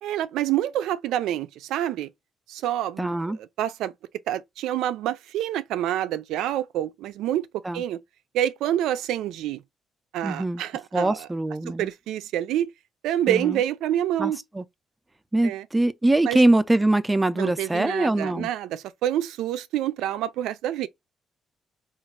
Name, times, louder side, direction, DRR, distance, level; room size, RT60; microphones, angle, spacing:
voice 1, 0.0-2.1 2.5-3.1 3.6-3.9 4.3-7.5 7.7-8.0 8.3-9.6 10.1-11.3 11.8-12.7 13.0-14.4 15.4-15.6 16.2-16.4 17.4-20.9, right 12 dB, 90° right, 0.4 m, -27 dB
voice 2, 3.0-3.4 7.6-7.8 10.2-10.6 10.9-11.9 13.3-13.6 14.2-14.6 15.3-18.5, right 2 dB, 15° right, 0.5 m, -23 dB
4.0 x 2.4 x 4.5 m
cardioid pair, 90°, 0 cm